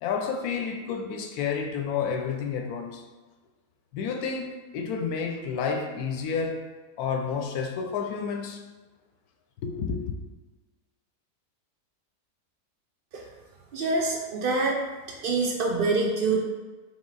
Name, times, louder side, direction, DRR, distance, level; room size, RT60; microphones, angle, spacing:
voice 1, 0.0-3.0 3.9-6.6 7.0-8.6 9.6-10.0, left 6 dB, 80° left, 1.1 m, -30 dB
voice 2, 13.7-14.8 15.2-16.4, right 3 dB, 75° right, 0.5 m, -25 dB
3.7 x 3.1 x 3.9 m
omnidirectional pair, 1.6 m